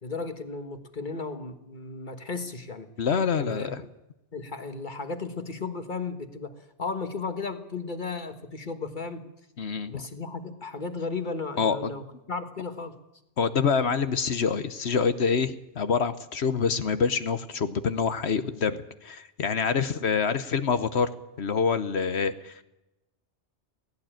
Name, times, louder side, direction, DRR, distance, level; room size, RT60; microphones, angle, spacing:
voice 1, 0.0-2.9 3.4-3.8 4.3-9.3 9.9-13.0, left 4 dB, 40° left, 8 dB, 1.7 m, -35 dB
voice 2, 3.0-3.8 9.6-10.0 11.6-11.9 13.4-21.1 21.4-22.6, left 5 dB, 65° left, 11 dB, 1.2 m, -26 dB
17.5 x 16.0 x 9.1 m, 0.92 s
omnidirectional pair, 1.2 m